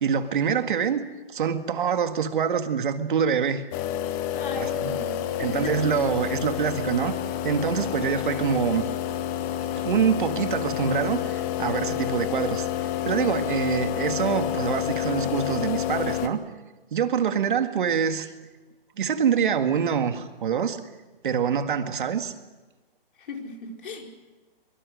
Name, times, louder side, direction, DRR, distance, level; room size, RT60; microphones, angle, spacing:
voice 1, 0.0-1.0 1.3-3.6 4.6-5.0 5.4-7.1 7.4-8.9 9.8-12.7 13.0-16.4 16.9-18.3 19.0-20.8 21.2-22.3, right 7 dB, 55° right, 8 dB, 2.0 m, -25 dB
sound 1, 3.7-16.3, left 11 dB, 20° left, 1.2 m, -29 dB
voice 2, 4.3-5.9 23.2-24.1, left 4 dB, 60° left, 2 dB, 4.7 m, -36 dB
24.0 x 23.5 x 6.5 m, 1.2 s
hypercardioid pair, 155°, 30 cm